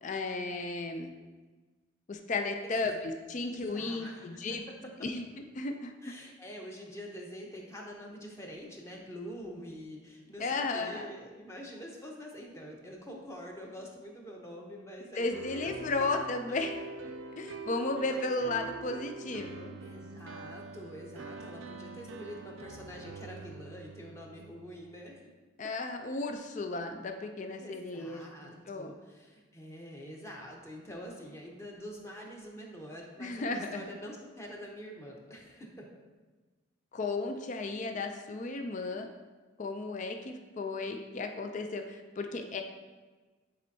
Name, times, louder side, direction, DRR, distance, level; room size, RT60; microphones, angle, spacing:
voice 1, 0.0-1.1 2.1-4.6 5.0-5.2 5.5-6.1 10.4-11.1 15.2-16.7 17.4-19.8 25.6-28.9 33.2-33.8 36.9-39.1 39.6-42.6, left 3 dB, 40° left, 5 dB, 0.4 m, -34 dB
voice 2, 3.4-4.6 6.0-15.9 16.5-16.6 18.0-18.3 19.8-25.2 27.6-35.9, equal, 15° left, -1 dB, 0.9 m, -46 dB
sound 1, 15.3-25.1, right 2 dB, 85° right, 0.4 m, -44 dB
9.1 x 4.4 x 2.7 m, 1.3 s
head